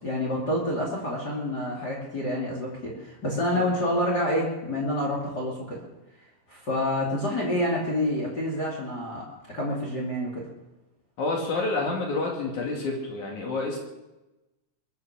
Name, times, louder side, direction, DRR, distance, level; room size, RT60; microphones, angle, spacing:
voice 1, 0.0-5.8 6.5-9.2 9.5-10.4, left 1 dB, 30° left, -2 dB, 3.0 m, -28 dB
voice 2, 11.2-13.8, left 3 dB, 65° left, -1 dB, 3.8 m, -28 dB
22.5 x 8.6 x 7.1 m, 1.0 s
omnidirectional pair, 3.8 m